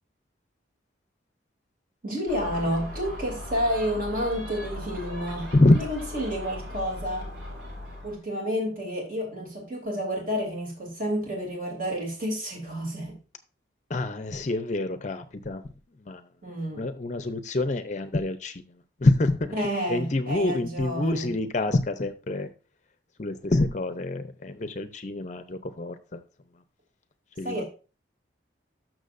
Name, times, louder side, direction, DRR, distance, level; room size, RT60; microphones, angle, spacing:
voice 1, 2.0-7.3 8.0-13.2 16.4-16.9 19.5-21.3 27.4-27.7, equal, 45° right, 2.9 m, -30 dB
Gull seagull, 2.3-8.2, left 1 dB, 80° right, 3.7 m, -38 dB
voice 2, 13.9-15.6 16.0-16.2 16.8-18.6 19.0-19.5 19.9-22.5 23.2-26.2 27.4-27.6, left 2 dB, 40° left, 0.6 m, -26 dB
13.0 x 6.2 x 2.6 m
head